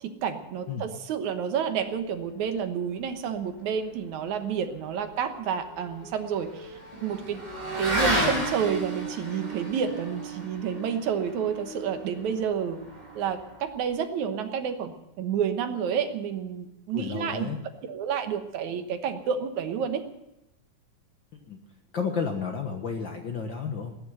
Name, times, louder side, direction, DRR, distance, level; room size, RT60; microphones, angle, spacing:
voice 1, 0.0-6.7 7.0-7.4 7.8-12.8 13.2-17.5 17.9-20.0, right 7 dB, 75° right, 7 dB, 2.5 m, -30 dB
Motorcycle / Accelerating revving vroom, 5.1-13.8, right 1 dB, 10° right, 4.5 m, -33 dB
voice 2, 16.9-17.6 21.5-21.6 21.9-23.9, left 5 dB, 50° left, 4 dB, 1.5 m, -31 dB
18.5 x 10.0 x 7.8 m, 0.90 s
omnidirectional pair, 3.5 m